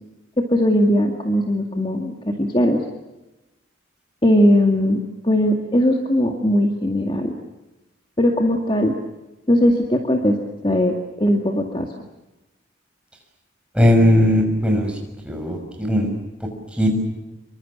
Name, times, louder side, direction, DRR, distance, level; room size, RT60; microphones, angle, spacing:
voice 1, 0.4-2.8 4.2-7.3 8.2-8.9 9.5-10.4 10.6-11.9, equal, 25° left, 3 dB, 2.2 m, -19 dB
voice 2, 13.7-14.9 15.2-16.1 16.8-17.0, left 1 dB, 5° right, 2 dB, 6.3 m, -17 dB
27.0 x 24.5 x 7.3 m, 1.0 s
head